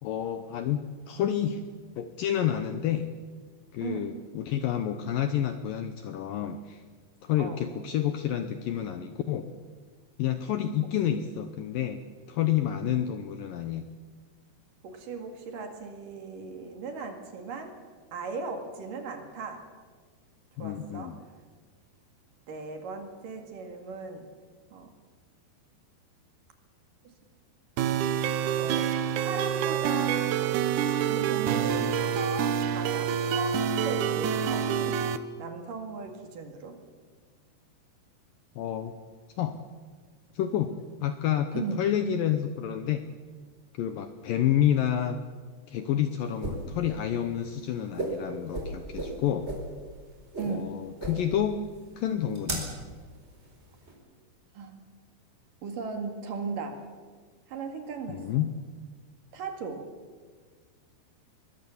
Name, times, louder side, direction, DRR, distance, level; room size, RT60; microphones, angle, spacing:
voice 1, 0.0-1.6 2.0-3.1 3.7-6.8 7.2-9.5 10.2-13.9 20.6-21.2 38.6-38.9 39.4-39.6 40.3-40.7 41.0-43.0 43.8-45.2 45.7-49.5 50.5-51.7 52.0-52.7 58.1-58.5, left 10 dB, 75° left, 9 dB, 2.1 m, -29 dB
voice 2, 3.8-4.1 7.4-7.6 14.8-17.8 18.1-19.6 20.6-21.1 22.5-24.3 24.7-24.9 27.0-27.1 28.6-28.9 29.2-30.2 31.1-35.1 35.4-36.8 41.5-41.8 50.4-50.7 54.5-54.8 55.6-56.8 57.5-58.4 59.3-59.9, right 5 dB, 55° right, 5 dB, 3.4 m, -37 dB
sound 1, 27.8-35.2, right 8 dB, 85° right, 1.7 m, -27 dB
sound 2, 46.2-53.9, right 1 dB, 15° right, 4.2 m, -37 dB
23.0 x 20.5 x 7.1 m, 1.5 s
omnidirectional pair, 4.9 m